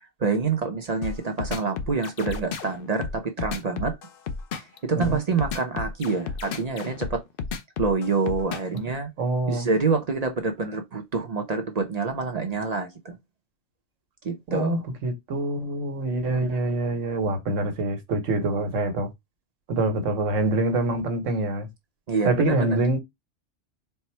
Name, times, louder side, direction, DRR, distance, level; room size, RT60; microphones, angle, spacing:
voice 1, 0.2-4.0 4.5-7.2 7.8-9.1 9.5-13.2 14.2-14.8 16.3-16.5 22.1-22.8, right 4 dB, 45° right, 0.6 m, -27 dB
sound 1, 1.0-8.8, left 5 dB, 60° left, 0.7 m, -32 dB
voice 2, 9.2-9.7 14.5-19.1 19.7-21.7 22.2-23.0, right 2 dB, 85° right, 1.3 m, -25 dB
4.4 x 2.1 x 4.2 m
omnidirectional pair, 1.3 m